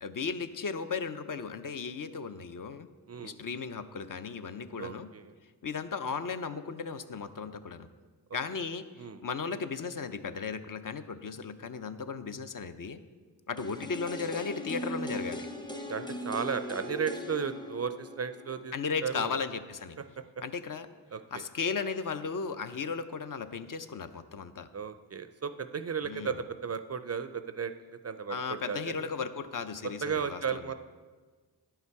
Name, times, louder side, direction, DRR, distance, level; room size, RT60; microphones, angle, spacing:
voice 1, 0.0-2.9 3.2-5.1 5.6-7.9 8.3-13.0 13.5-15.5 18.7-20.0 20.4-20.9 21.3-24.7 26.0-26.3 28.3-30.6, left 5 dB, 50° left, 10 dB, 0.6 m, -36 dB
voice 2, 4.8-5.4 9.0-9.2 15.9-18.7 19.0-19.4 21.1-21.4 24.7-29.1 30.0-30.7, right 6 dB, 35° right, 10 dB, 0.4 m, -35 dB
sound 1, 13.6-19.5 19.8-19.9, left 1 dB, 10° left, 0.7 m, -40 dB
9.9 x 5.7 x 4.6 m, 1.4 s
cardioid pair, 55°, 44 cm